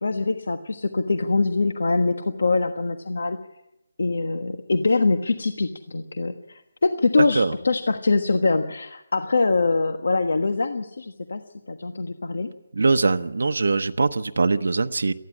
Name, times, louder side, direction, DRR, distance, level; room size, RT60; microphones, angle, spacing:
voice 1, 0.0-3.4 4.0-11.4 11.7-12.5, left 3 dB, 65° left, 7 dB, 1.3 m, -23 dB
voice 2, 7.2-7.5 12.8-15.1, right 3 dB, 65° right, 8 dB, 0.9 m, -22 dB
19.0 x 14.0 x 9.8 m, 0.89 s
hypercardioid pair, 180°, 0 cm